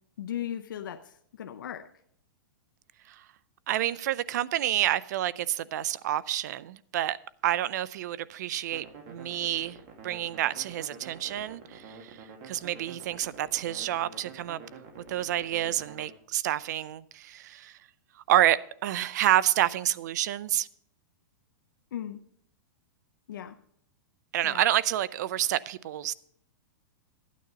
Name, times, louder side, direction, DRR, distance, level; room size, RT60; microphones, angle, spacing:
voice 1, 0.2-1.9 21.9-22.2 23.3-23.6 24.4-24.6, left 10 dB, 90° left, 0.6 m, -37 dB
voice 2, 3.7-7.2 7.4-9.8 10.0-14.6 15.1-17.8 18.3-20.7 24.3-26.1, right 12 dB, 60° right, 0.4 m, -28 dB
sound 1, 8.7-16.1, right 5 dB, 45° right, 2.1 m, -48 dB
12.0 x 9.3 x 4.0 m
supercardioid pair, 160°, 11 cm